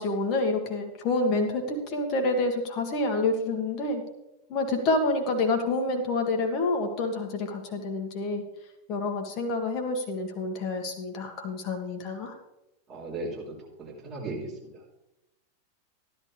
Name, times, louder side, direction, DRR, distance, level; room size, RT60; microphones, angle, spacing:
voice 1, 0.0-4.0 4.5-8.4 8.9-12.3, left 2 dB, 40° left, 3 dB, 1.9 m, -28 dB
voice 2, 12.9-14.8, right 2 dB, 35° right, -4 dB, 4.9 m, -37 dB
14.5 x 11.0 x 3.4 m, 0.91 s
figure-of-eight pair, 90°, 0 cm